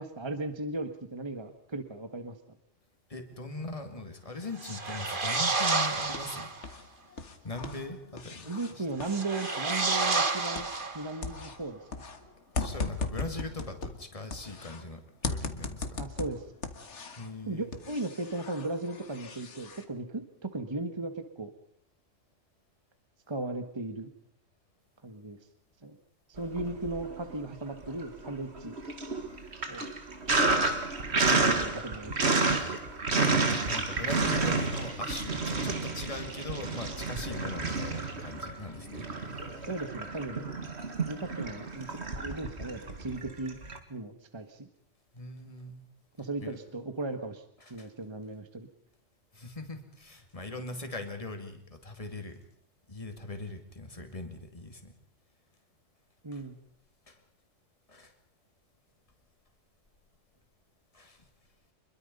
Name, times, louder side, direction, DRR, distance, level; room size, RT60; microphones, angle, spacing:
voice 1, 0.0-2.4 8.4-10.7 10.9-11.8 16.0-16.4 17.5-21.5 23.3-24.1 25.0-25.4 25.8-26.0 26.3-28.7 29.7-29.9 31.2-32.5 39.7-40.4 41.1-41.9 42.2-43.6 43.9-44.7 46.2-48.7 56.2-56.6, right 2 dB, 20° right, 8 dB, 1.4 m, -36 dB
voice 2, 3.1-6.5 7.4-8.5 8.8-8.9 12.5-16.0 17.2-17.7 33.6-39.1 45.1-45.8 46.4-46.6 47.6-47.9 49.3-52.4 52.9-54.9 56.3-56.4 57.1-57.2 57.9-58.1 60.9-61.2, left 2 dB, 30° left, 5 dB, 2.6 m, -40 dB
sound 1, 4.6-6.6 9.0-11.3, right 3 dB, 45° right, 1.8 m, -30 dB
sound 2, 5.7-6.8 7.1-11.0 11.2-14.8 15.2-17.3 17.7-19.8, left 4 dB, 70° left, 1.9 m, -38 dB
Sink (filling or washing), 26.5-27.3 27.7-43.8, right 3 dB, 60° right, 2.2 m, -30 dB
25.5 x 22.5 x 5.4 m, 0.64 s
omnidirectional pair, 1.2 m